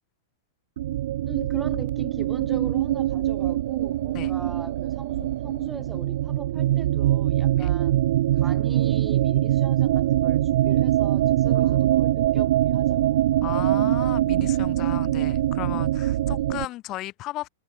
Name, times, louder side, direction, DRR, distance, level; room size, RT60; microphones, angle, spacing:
sound 1, 0.8-16.6, right 13 dB, 70° right, 0.5 m, -23 dB
voice 1, 1.2-8.0 8.3-13.3 16.3-16.7, right 3 dB, 10° right, 6.8 m, -41 dB
voice 2, 11.5-12.1 13.4-17.5, left 17 dB, 35° left, 5.5 m, -35 dB
hypercardioid pair, 130°, 0 cm